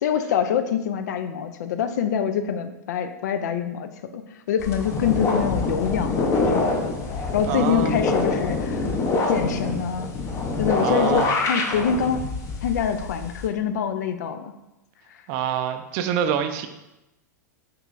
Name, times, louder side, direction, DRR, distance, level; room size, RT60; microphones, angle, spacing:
voice 1, 0.0-6.8 7.3-8.9 9.3-10.1 10.6-12.3 12.6-14.5, left 7 dB, 70° left, 9 dB, 0.4 m, -25 dB
sound 1, 4.6-13.5, left 3 dB, 30° left, 0.6 m, -25 dB
voice 2, 7.5-8.1 10.8-11.4 15.3-16.7, right 8 dB, 50° right, 8 dB, 0.4 m, -26 dB
5.6 x 3.0 x 2.5 m, 0.94 s
hypercardioid pair, 105°, 10 cm